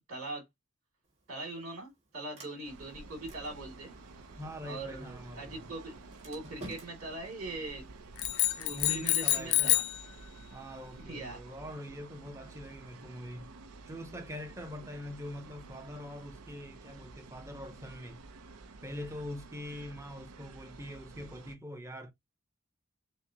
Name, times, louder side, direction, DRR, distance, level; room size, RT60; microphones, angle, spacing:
voice 1, 0.1-0.4 1.3-3.9 4.6-5.9 6.2-7.8 8.6-9.8 11.1-11.4, right 2 dB, 70° right, 2.4 m, -41 dB
Sliding door, 1.0-11.0, right 1 dB, 30° right, 1.9 m, -55 dB
sound 1, 2.6-21.6, right 3 dB, 85° right, 0.7 m, -51 dB
voice 2, 4.4-5.7 8.7-9.8 10.5-13.5 13.9-18.2 18.8-22.1, left 1 dB, 15° right, 0.6 m, -43 dB
sound 2, 8.2-10.0, left 14 dB, 70° left, 0.4 m, -28 dB
6.3 x 2.1 x 2.8 m
head